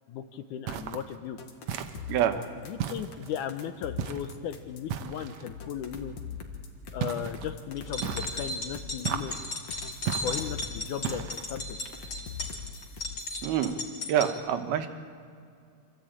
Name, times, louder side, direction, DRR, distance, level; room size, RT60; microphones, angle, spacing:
voice 1, 0.1-1.4 2.7-6.2 6.9-9.4 10.2-11.8, left 9 dB, 70° left, 9 dB, 2.0 m, -36 dB
sound 1, 0.7-1.1 1.7-2.3 2.8-3.5 4.0-4.4 4.9-5.5 7.0-7.5 8.0-8.5 9.0-9.5 10.1-10.5 11.0-11.5, right 8 dB, 70° right, 1.8 m, -35 dB
sound 2, 1.4-4.9 5.5-9.1 9.7-13.4, left 7 dB, 55° left, 2.5 m, -42 dB
voice 2, 2.1-2.4 13.4-13.8 14.1-14.9, right 10 dB, 90° right, 8 dB, 3.1 m, -26 dB
sound 3, 7.8-14.3, left 1 dB, 30° left, 2.8 m, -36 dB
26.0 x 16.0 x 8.8 m, 2.3 s
omnidirectional pair, 4.2 m